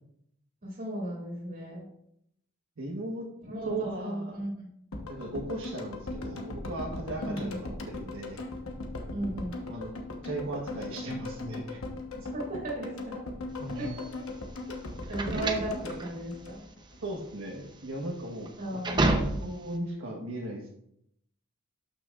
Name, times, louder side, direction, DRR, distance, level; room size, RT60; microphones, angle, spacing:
voice 1, 0.6-1.9 3.5-4.7 7.2-7.6 9.1-9.6 12.1-13.2 13.7-13.9 15.1-16.7 18.6-19.1, right 1 dB, 40° right, -4 dB, 2.4 m, -36 dB
voice 2, 2.8-3.3 3.6-4.4 5.1-8.4 9.7-9.9 10.2-11.8 13.6-13.9 15.3-15.5 17.0-18.8 19.4-20.7, right 1 dB, 75° right, -2 dB, 1.2 m, -37 dB
sound 1, 4.9-17.1 17.4-17.5, left 2 dB, 70° left, 1.1 m, -39 dB
sound 2, 13.8-19.8, right 2 dB, 20° right, 0.6 m, -31 dB
12.0 x 5.9 x 2.4 m, 0.74 s
head